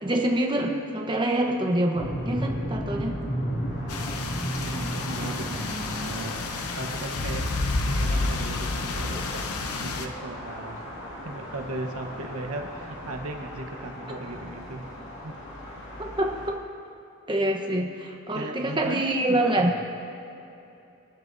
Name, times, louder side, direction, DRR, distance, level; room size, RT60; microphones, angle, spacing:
voice 1, 0.0-3.2 4.8-4.9 16.0-16.6 17.3-19.7, right 1 dB, 20° right, 1 dB, 1.0 m, -26 dB
sound 1, 1.9-16.5, equal, 55° left, 2.3 m, -35 dB
sound 2, 3.9-10.1, left 3 dB, 85° left, 0.8 m, -30 dB
voice 2, 4.6-7.5 7.8-9.5 9.7-10.8 11.2-14.8 15.2-15.4 18.3-19.8, right 2 dB, 85° right, 3 dB, 1.1 m, -37 dB
24.5 x 10.5 x 2.7 m, 2.8 s
head